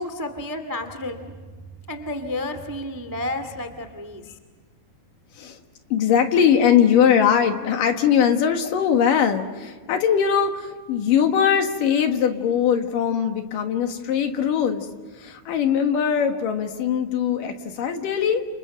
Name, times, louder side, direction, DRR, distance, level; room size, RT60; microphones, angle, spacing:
voice 1, 0.0-1.3 1.9-4.4, left 1 dB, 10° right, 8 dB, 0.9 m, -31 dB
voice 2, 5.9-14.9 15.2-18.4, left 8 dB, 70° left, 6 dB, 3.1 m, -21 dB
29.5 x 29.0 x 6.6 m, 1.4 s
omnidirectional pair, 4.2 m